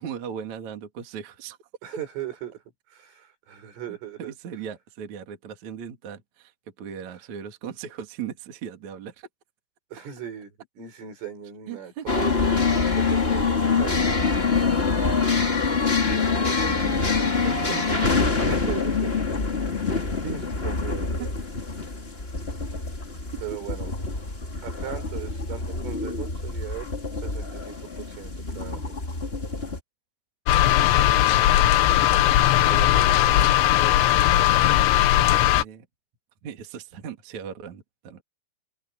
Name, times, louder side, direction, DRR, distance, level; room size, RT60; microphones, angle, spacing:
voice 1, 0.0-1.6 3.9-6.5 6.8-9.3 11.7-12.5 15.0-15.1 16.0-18.7 21.2-21.3 30.6-30.9 35.5-35.9 36.4-38.2, right 8 dB, 45° right, 3.2 m, -38 dB
voice 2, 1.8-2.6 2.9-4.3 7.1-7.2 9.9-12.2 13.0-15.0 18.5-19.1 19.5-19.8 20.2-21.3 23.4-23.9 24.6-29.0 32.7-33.7, right 10 dB, 75° right, 8.5 m, -38 dB
sound 1, 12.1-29.8, left 4 dB, 30° left, 1.1 m, -25 dB
sound 2, 30.5-35.6, left 13 dB, 75° left, 3.3 m, -18 dB
omnidirectional pair, 5.8 m